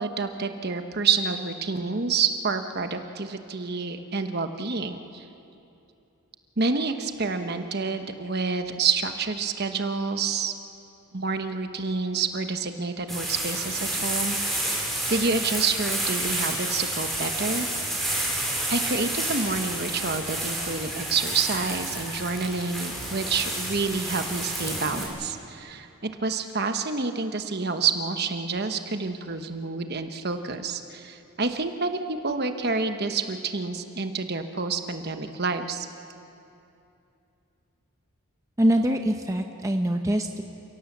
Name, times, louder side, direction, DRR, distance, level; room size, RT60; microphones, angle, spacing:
voice 1, 0.0-5.2 6.6-10.5 11.1-14.8 15.1-17.7 18.1-18.2 18.7-35.9, right 4 dB, 45° right, 7 dB, 1.1 m, -28 dB
sound 1, 13.1-25.1, right 1 dB, ahead, 4.4 m, -30 dB
voice 2, 38.6-40.4, equal, 15° right, 4 dB, 0.8 m, -24 dB
29.5 x 17.5 x 7.4 m, 2.8 s
head